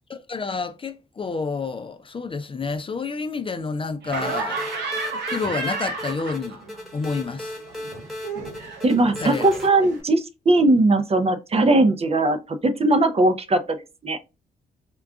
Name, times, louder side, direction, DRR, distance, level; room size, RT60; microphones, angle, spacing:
voice 1, 0.1-4.7 5.3-6.6 6.9-7.6 9.2-9.5, left 4 dB, 30° left, 0.4 m, -29 dB
Laughter, 4.0-6.8 7.1-10.0, right 3 dB, 80° right, 0.8 m, -32 dB
sound 1, 4.2-9.7, left 1 dB, ahead, 1.2 m, -36 dB
voice 2, 8.8-13.8 14.0-14.2, right 2 dB, 35° right, 0.5 m, -19 dB
3.7 x 2.3 x 2.3 m
supercardioid pair, 50°, 18 cm